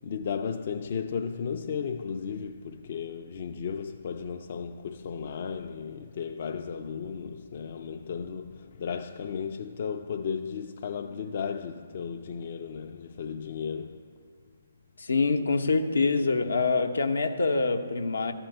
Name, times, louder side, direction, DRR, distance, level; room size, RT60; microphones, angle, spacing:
voice 1, 0.0-14.0, left 6 dB, 50° left, 0.4 m, -35 dB
voice 2, 15.0-18.3, left 4 dB, 80° left, 0.7 m, -25 dB
13.0 x 4.4 x 7.7 m
figure-of-eight pair, 145°, 0 cm